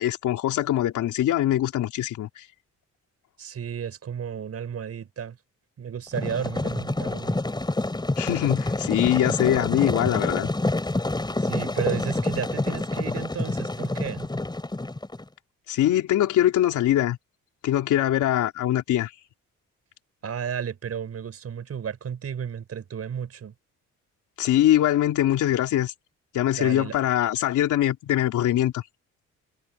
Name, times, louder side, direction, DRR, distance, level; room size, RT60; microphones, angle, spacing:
voice 1, 0.0-2.4 8.2-10.5 15.7-17.2 17.6-19.1 24.4-25.9 26.3-28.8, left 12 dB, 80° left, 3.6 m, -23 dB
voice 2, 3.4-5.4 5.8-7.4 11.4-14.3 20.2-23.5 26.5-27.0, right 8 dB, 55° right, 5.6 m, -33 dB
sound 1, 6.1-15.2, left 2 dB, 15° left, 5.4 m, -27 dB
cardioid pair, 90°, 30 cm